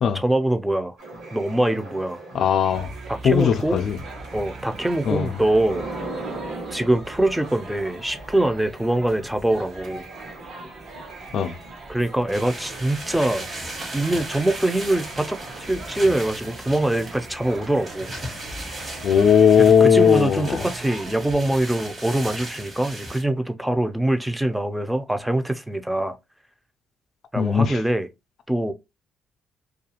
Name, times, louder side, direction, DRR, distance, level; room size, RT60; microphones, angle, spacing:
voice 1, 0.1-0.9 1.3-2.2 3.1-3.8 4.3-5.8 6.7-10.1 11.9-13.4 13.9-18.1 19.6-26.2 27.3-28.1 28.5-28.7, right 1 dB, 5° right, 0.4 m, -23 dB
sound 1, 1.0-20.4, right 2 dB, 75° right, 1.4 m, -41 dB
voice 2, 2.3-2.9 3.2-4.0 5.1-5.4 11.3-11.5 19.0-20.6 27.4-27.8, left 7 dB, 60° left, 0.3 m, -18 dB
sound 2, 2.7-21.4, right 3 dB, 60° right, 0.7 m, -41 dB
sound 3, 12.3-23.2, right 1 dB, 40° right, 1.2 m, -37 dB
2.4 x 2.3 x 2.8 m
cardioid pair, 90°, 0 cm